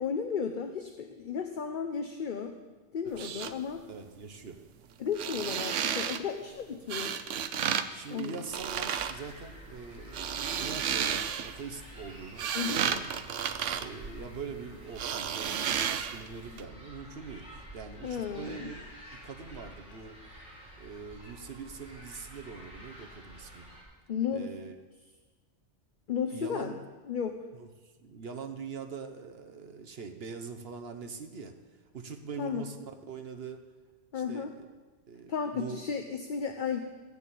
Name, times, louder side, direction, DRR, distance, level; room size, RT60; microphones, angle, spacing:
voice 1, 0.0-2.5 2.9-3.8 5.0-7.2 8.1-8.4 12.5-12.9 18.0-18.7 24.1-24.5 26.1-26.7 27.1-27.4 32.4-32.7 34.1-34.5 35.3-36.8, left 7 dB, 50° left, 6 dB, 0.8 m, -34 dB
sound 1, 3.1-3.5 5.1-6.2 6.9-7.9 8.1-9.1 10.0-11.6 12.1-14.6 15.0-16.3 16.6-16.7, right 8 dB, 85° right, 1.0 m, -32 dB
voice 2, 3.9-4.6 7.9-13.0 13.8-20.2 20.8-23.7 24.3-24.7 26.3-26.7 27.6-31.5 31.9-32.8 33.1-33.6 34.1-34.7 35.1-35.8, right 5 dB, 55° right, 5 dB, 1.2 m, -43 dB
sound 2, 8.5-23.8, equal, 5° right, 4.0 m, -49 dB
14.0 x 6.8 x 8.5 m, 1.3 s
omnidirectional pair, 1.2 m